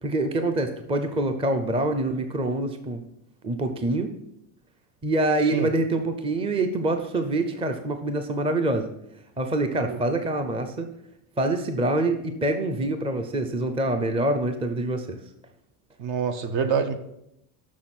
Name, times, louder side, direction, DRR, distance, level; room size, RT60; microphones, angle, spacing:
voice 1, 0.0-3.0 3.4-4.1 5.0-8.9 9.4-10.9 11.4-15.2, right 2 dB, 15° right, 7 dB, 0.6 m, -25 dB
voice 2, 16.0-17.0, right 6 dB, 55° right, 9 dB, 1.0 m, -26 dB
6.3 x 6.3 x 5.9 m, 0.81 s
cardioid pair, 125°, 43 cm